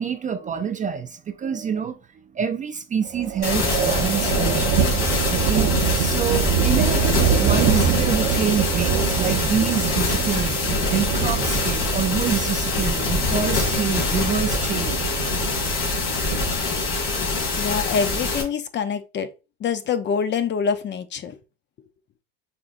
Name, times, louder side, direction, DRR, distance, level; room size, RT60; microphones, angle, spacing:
voice 1, 0.0-2.0 2.3-4.9 5.2-15.5 16.5-16.6, right 8 dB, 25° right, 0.4 m, -27 dB
sound 1, 3.1-16.6, right 8 dB, 85° right, 0.9 m, -25 dB
sound 2, 3.4-18.4, left 3 dB, 75° left, 2.6 m, -24 dB
voice 2, 17.6-19.3 19.6-21.3, left 6 dB, 35° left, 0.6 m, -25 dB
5.5 x 3.7 x 2.5 m
supercardioid pair, 110°, 31 cm